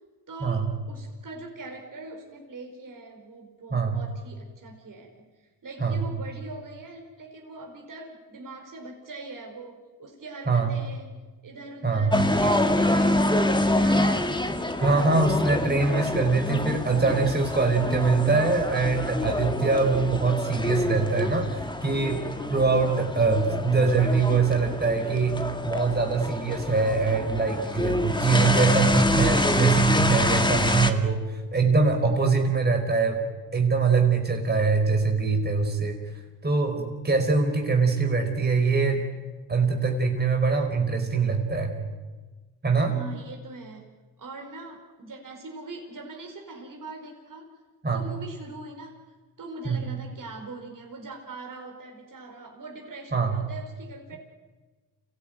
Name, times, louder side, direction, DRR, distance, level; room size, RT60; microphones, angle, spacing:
voice 1, 0.3-11.2 11.4-14.3 14.7-15.1 42.9-47.5 47.9-49.0 49.4-54.2, right 3 dB, 50° right, 1 dB, 4.8 m, -42 dB
voice 2, 11.8-12.2 14.8-22.2 22.5-33.2 33.5-36.0 36.4-39.0 39.5-41.7 42.6-43.0 47.8-48.1 49.6-49.8 53.1-53.3, right 4 dB, 25° right, 2 dB, 4.6 m, -23 dB
sound 1, 12.1-30.9, left 1 dB, 10° left, 2.2 m, -26 dB
27.5 x 17.0 x 9.3 m, 1.3 s
supercardioid pair, 65°, 42 cm